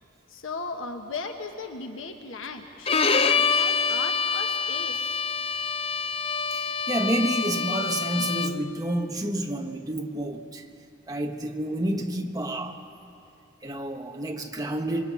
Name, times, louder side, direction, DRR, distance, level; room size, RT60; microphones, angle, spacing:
voice 1, 0.3-5.2, left 4 dB, 90° left, 4 dB, 1.3 m, -37 dB
Bowed string instrument, 2.9-8.7, left 5 dB, 30° left, 0.5 m, -26 dB
voice 2, 6.5-10.7 11.1-12.8 13.6-15.1, right 1 dB, 20° right, 3 dB, 1.3 m, -29 dB
27.0 x 23.0 x 5.6 m, 2.6 s
head